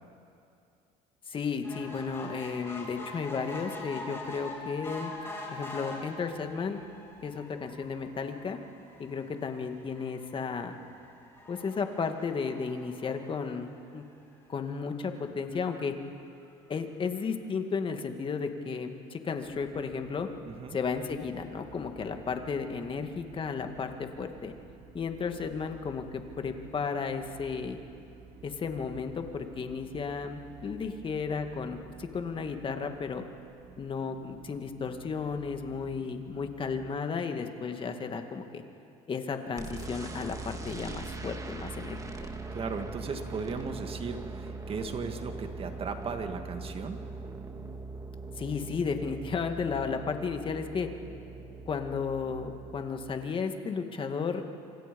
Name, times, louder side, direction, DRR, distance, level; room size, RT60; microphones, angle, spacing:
voice 1, 1.3-5.1 5.5-6.8 7.2-8.6 9.0-10.8 11.5-14.0 14.5-15.9 16.7-20.3 20.7-24.5 24.9-27.8 28.4-33.2 33.8-38.6 39.1-42.3 48.4-50.9 51.7-54.4, left 5 dB, 35° left, 6 dB, 2.1 m, -34 dB
sound 1, 1.6-14.2 14.8-14.9 15.2-15.3 15.5-15.6, left 2 dB, 15° left, 4.8 m, -44 dB
sound 2, 19.4-36.9, right 7 dB, 75° right, 2.6 m, -53 dB
voice 2, 20.5-20.8 42.5-47.0, right 5 dB, 35° right, 6 dB, 2.1 m, -36 dB
sound 3, 39.6-52.9, right 3 dB, 20° right, 1.9 m, -41 dB
27.5 x 26.0 x 5.4 m, 2.5 s
cardioid pair, 110°, 16 cm